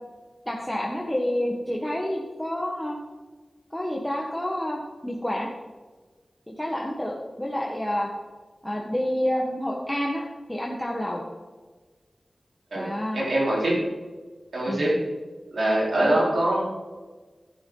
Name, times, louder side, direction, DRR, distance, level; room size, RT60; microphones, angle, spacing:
voice 1, 0.5-3.0 3.7-5.5 6.5-8.1 8.6-11.3 12.7-13.2 14.7-14.9 16.0-16.2, left 1 dB, 5° left, -2 dB, 1.4 m, -29 dB
voice 2, 12.7-13.8 14.5-15.0 15.5-16.6, right 1 dB, 85° right, -4 dB, 4.0 m, -23 dB
12.0 x 11.5 x 3.9 m, 1.3 s
wide cardioid pair, 85°, 0 cm